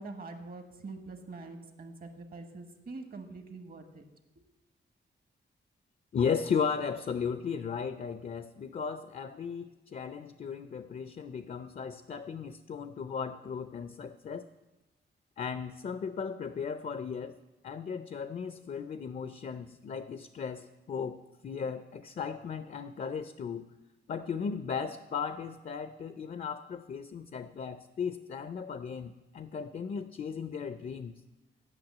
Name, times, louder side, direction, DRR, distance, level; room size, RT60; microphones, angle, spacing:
voice 1, 0.0-4.0, right 3 dB, 50° right, 6 dB, 1.2 m, -44 dB
voice 2, 6.1-14.5 15.4-17.4 17.6-23.7 24.1-31.1, left 6 dB, 45° left, 11 dB, 0.5 m, -36 dB
9.0 x 6.0 x 7.2 m, 1.1 s
cardioid pair, 90°, 20 cm